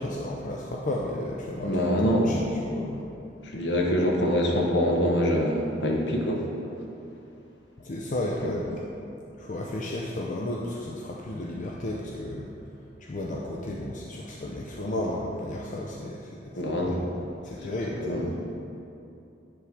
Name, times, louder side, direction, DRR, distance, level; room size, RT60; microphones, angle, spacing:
voice 1, 0.0-1.7 2.0-3.0 7.8-8.8 9.4-12.5 13.0-17.0 17.4-18.3, left 1 dB, 45° left, -2 dB, 0.5 m, -33 dB
voice 2, 1.6-2.5 3.4-6.4 8.4-8.5 16.5-17.0 18.0-18.3, equal, 65° left, 0 dB, 1.0 m, -25 dB
9.9 x 3.7 x 4.8 m, 2.7 s
head